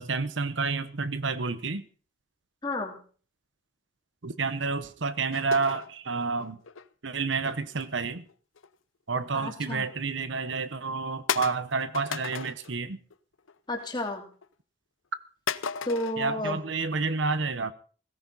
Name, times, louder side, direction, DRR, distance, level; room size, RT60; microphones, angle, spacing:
voice 1, 0.0-1.8 4.2-6.6 7.0-8.2 9.1-13.0 16.2-17.7, right 4 dB, 70° right, 1.0 m, -29 dB
voice 2, 2.6-2.9 9.3-9.8 13.7-14.2 15.8-16.6, left 2 dB, 20° left, 2.8 m, -31 dB
sound 1, 5.3-6.9 7.5-8.7 9.1-9.4 9.9-10.0 10.5-10.6 11.3-12.8 13.1-13.5 13.8-14.5 15.5-16.2, left 7 dB, 90° left, 0.7 m, -35 dB
17.5 x 15.0 x 4.1 m
head